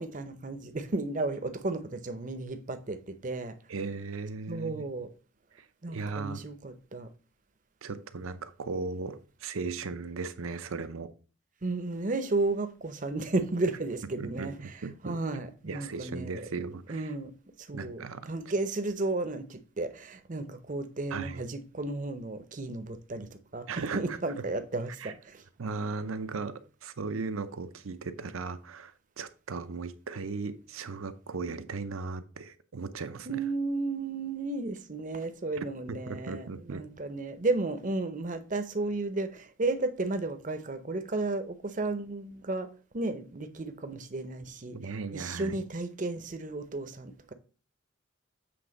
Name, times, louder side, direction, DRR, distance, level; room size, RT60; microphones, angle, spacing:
voice 1, 0.0-3.5 4.5-5.1 5.8-7.1 11.6-14.5 15.0-16.5 16.9-17.3 17.7-23.7 23.9-25.4 33.3-42.7 42.9-44.8 45.1-47.3, right 2 dB, 40° right, 0.7 m, -33 dB
voice 2, 3.7-4.8 5.5-6.4 7.8-11.1 14.2-17.1 17.7-18.3 21.1-21.4 23.7-24.2 25.0-25.1 25.6-33.4 35.9-36.8 44.7-45.6, right 4 dB, 80° right, 0.7 m, -37 dB
7.8 x 3.4 x 5.2 m
head